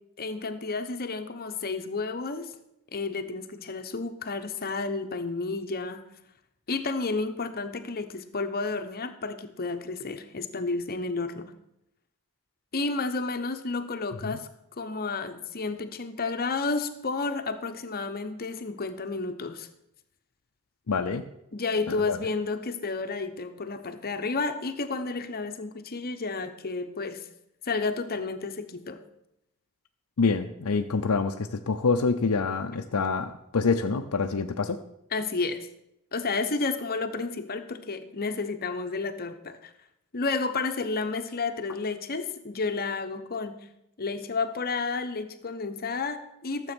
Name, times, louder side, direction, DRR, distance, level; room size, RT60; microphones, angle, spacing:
voice 1, 0.2-2.5 2.9-6.0 6.7-11.5 12.7-14.5 14.8-19.7 21.5-27.2 27.6-29.0 35.1-35.7 36.1-39.7 40.1-43.6 44.0-46.7, left 3 dB, 45° left, 9 dB, 0.9 m, -31 dB
voice 2, 20.9-21.2 21.9-22.2 30.2-34.8, left 4 dB, 75° left, 6 dB, 0.6 m, -26 dB
12.5 x 7.5 x 6.1 m, 0.83 s
head